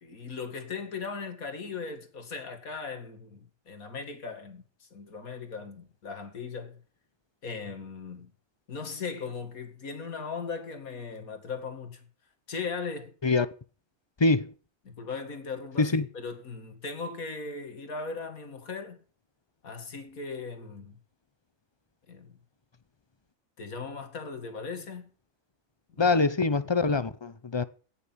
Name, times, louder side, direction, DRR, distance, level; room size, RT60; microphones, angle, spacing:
voice 1, 0.0-6.8 7.4-8.3 8.7-12.0 12.5-13.1 14.9-19.0 19.6-21.0 22.1-22.3 23.6-25.1 25.9-26.2, left 4 dB, 85° left, 2.6 m, -38 dB
voice 2, 14.2-14.5 15.8-16.1 26.0-27.6, left 3 dB, 35° left, 0.4 m, -24 dB
17.0 x 6.9 x 7.3 m
omnidirectional pair, 1.4 m